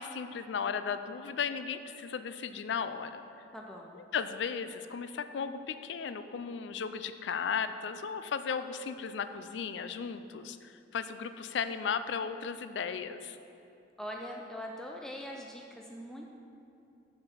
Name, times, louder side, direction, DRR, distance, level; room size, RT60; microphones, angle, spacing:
voice 1, 0.0-3.2 3.9-13.4, left 6 dB, 70° left, 11 dB, 0.4 m, -35 dB
voice 2, 3.5-4.0 14.0-16.3, equal, 5° left, 0 dB, 0.4 m, -42 dB
6.5 x 5.5 x 6.1 m, 2.7 s
head